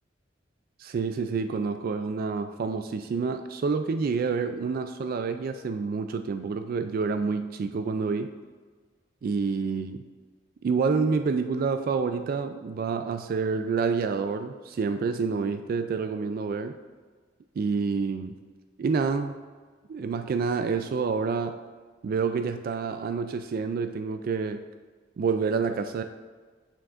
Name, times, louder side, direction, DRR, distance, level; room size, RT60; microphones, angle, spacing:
voice 1, 0.8-8.4 9.2-10.1 10.6-16.8 17.6-18.4 18.8-19.4 19.9-21.6 22.0-24.6 25.2-26.0, right 5 dB, 50° right, 9 dB, 0.3 m, -28 dB
8.6 x 7.1 x 2.5 m, 1.5 s
head